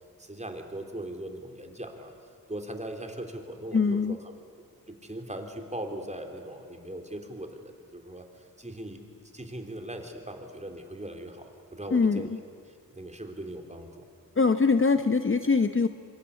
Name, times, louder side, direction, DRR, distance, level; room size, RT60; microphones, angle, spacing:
voice 1, 0.2-2.1 2.5-4.2 4.9-8.2 8.6-9.0 9.3-12.3 12.9-14.0, right 1 dB, 20° right, 4 dB, 3.4 m, -39 dB
voice 2, 3.7-4.2 11.9-12.3 14.4-15.9, left 4 dB, 35° left, 10 dB, 0.9 m, -23 dB
26.0 x 23.5 x 8.3 m, 2.3 s
wide cardioid pair, 70°, 36 cm